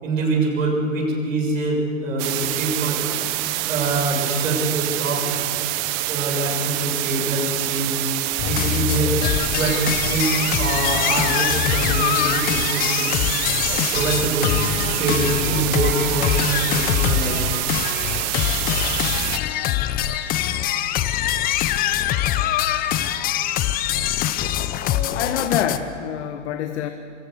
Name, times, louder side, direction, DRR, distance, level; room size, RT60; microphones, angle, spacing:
voice 1, 0.0-3.0 3.7-5.3 6.1-8.0 8.5-9.2 9.5-13.1 13.7-14.6 14.9-17.4, right 2 dB, 75° right, 1 dB, 7.2 m, -24 dB
sound 1, 2.2-19.4, right 17 dB, 35° right, 0.9 m, -26 dB
voice 2, 3.1-3.4 14.9-15.0 17.5-18.6 25.1-26.9, left 10 dB, 55° left, 6 dB, 1.5 m, -28 dB
sound 2, 8.4-25.8, left 11 dB, 20° left, 0.8 m, -23 dB
27.0 x 22.5 x 6.8 m, 2.5 s
hypercardioid pair, 130°, 40 cm